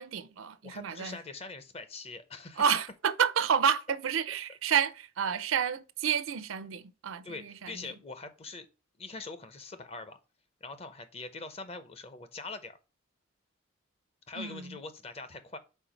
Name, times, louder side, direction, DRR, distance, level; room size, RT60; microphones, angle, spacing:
voice 1, 0.0-1.2 2.6-7.9 14.3-14.8, right 7 dB, 90° right, 0.5 m, -30 dB
voice 2, 0.6-2.6 7.2-8.7 9.0-10.2 10.6-12.8 14.3-15.6, left 3 dB, 30° left, 0.7 m, -43 dB
4.5 x 4.3 x 5.1 m
head